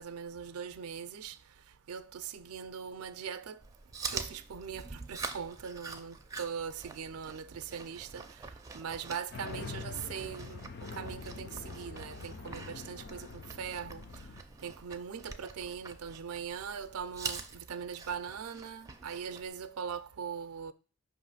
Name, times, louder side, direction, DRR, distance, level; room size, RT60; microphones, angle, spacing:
voice 1, 0.0-1.4 1.9-3.6 4.1-8.3 8.7-10.6 11.0-14.0 14.6-20.7, right 7 dB, 85° right, 0.5 m, -41 dB
Chewing mastication, 3.6-19.5, right 4 dB, 15° right, 0.4 m, -45 dB
sound 1, 9.3-14.4, left 4 dB, 50° left, 0.4 m, -44 dB
5.6 x 3.0 x 5.5 m
head